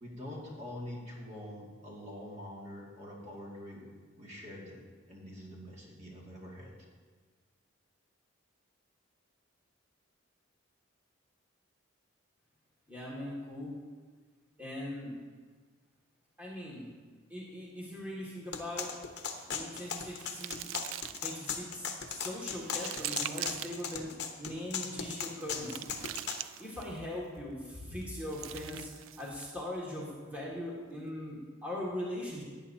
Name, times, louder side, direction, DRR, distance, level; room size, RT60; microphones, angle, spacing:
voice 1, 0.0-6.7, left 1 dB, 35° right, -4 dB, 2.1 m, -45 dB
voice 2, 12.9-13.7 14.6-15.2 16.4-16.9 17.3-18.9 19.5-20.6 20.9-24.1 24.4-26.0 26.6-28.9 29.2-32.4, left 1 dB, 5° right, -6 dB, 2.0 m, -40 dB
sound 1, 18.5-26.4, left 6 dB, 55° left, 1.0 m, -37 dB
sound 2, 19.2-21.5 22.0-24.0 24.9-27.0 28.0-29.6, right 13 dB, 75° right, 0.3 m, -43 dB
18.0 x 9.3 x 2.8 m, 1.5 s
head